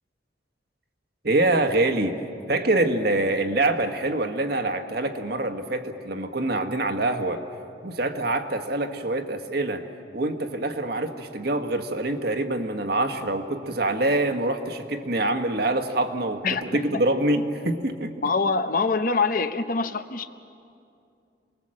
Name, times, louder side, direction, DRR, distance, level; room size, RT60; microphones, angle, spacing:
voice 1, 1.2-2.2 2.5-7.4 7.8-9.8 10.1-16.4 16.7-18.1, right 2 dB, 55° right, 6 dB, 1.5 m, -25 dB
voice 2, 16.4-16.9 18.2-20.3, left 4 dB, 50° left, 10 dB, 0.9 m, -25 dB
27.5 x 20.5 x 7.7 m, 2.5 s
head